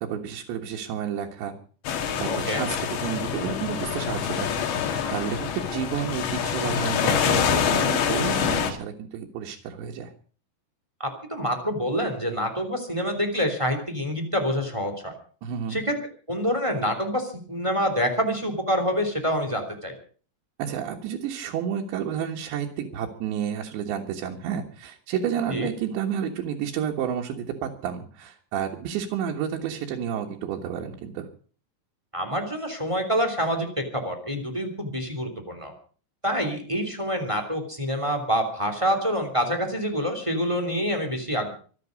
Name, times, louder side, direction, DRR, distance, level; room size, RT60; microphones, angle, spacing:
voice 1, 0.0-1.5 2.2-2.8 3.0-4.5 5.1-10.1 15.4-15.8 20.6-31.3, right 8 dB, 90° right, 0 dB, 3.8 m, -30 dB
sound 1, 1.9-8.7, left 7 dB, 80° left, 4.1 m, -26 dB
voice 2, 2.3-2.6 11.0-15.1 15.7-16.0 16.3-19.9 25.5-25.7 32.1-35.7 36.2-41.5, equal, 10° right, 6 dB, 2.2 m, -27 dB
25.0 x 9.4 x 5.1 m, 0.42 s
omnidirectional pair, 4.9 m